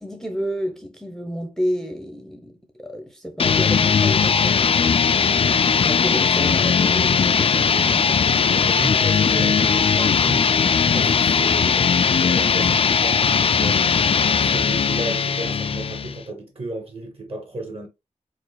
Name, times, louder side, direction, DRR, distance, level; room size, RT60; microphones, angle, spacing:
voice 1, 0.0-5.1 5.4-8.2 8.5-8.7 9.4-9.6, equal, 5° left, 0.8 m, -30 dB
sound 1, 3.4-16.2, left 6 dB, 45° left, 0.4 m, -19 dB
voice 2, 8.6-10.5 10.9-14.0 14.4-17.9, right 2 dB, 45° right, 2.5 m, -33 dB
4.7 x 4.7 x 2.3 m
wide cardioid pair, 120°, 13 cm